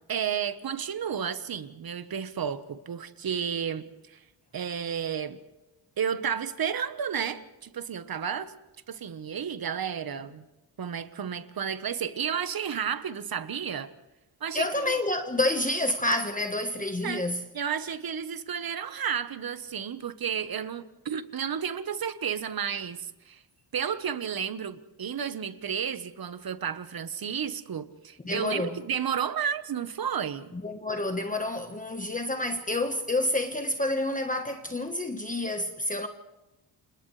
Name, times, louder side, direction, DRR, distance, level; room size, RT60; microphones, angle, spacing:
voice 1, 0.1-4.2 4.5-5.4 6.0-8.5 8.9-10.4 10.8-13.9 14.4-14.9 17.0-17.2 17.5-23.4 23.7-30.5, right 8 dB, 45° right, 1.3 m, -32 dB
voice 2, 14.5-17.4 28.2-28.8 30.5-36.1, left 2 dB, 15° left, 1.3 m, -29 dB
29.5 x 27.0 x 3.3 m
cardioid pair, 105°, 49 cm